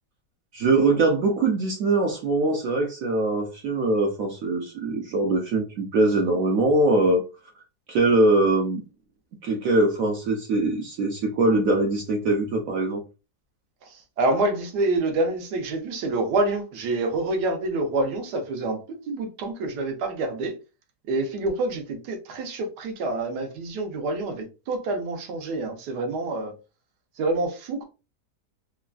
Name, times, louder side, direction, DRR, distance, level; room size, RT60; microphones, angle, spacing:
voice 1, 0.5-7.2 7.9-8.8 9.4-13.0, right 2 dB, 70° right, 0.8 m, -22 dB
voice 2, 14.2-18.8 19.1-20.5 21.1-26.5 27.2-27.8, right 2 dB, 85° right, 1.3 m, -27 dB
3.2 x 2.2 x 2.3 m
omnidirectional pair, 1.7 m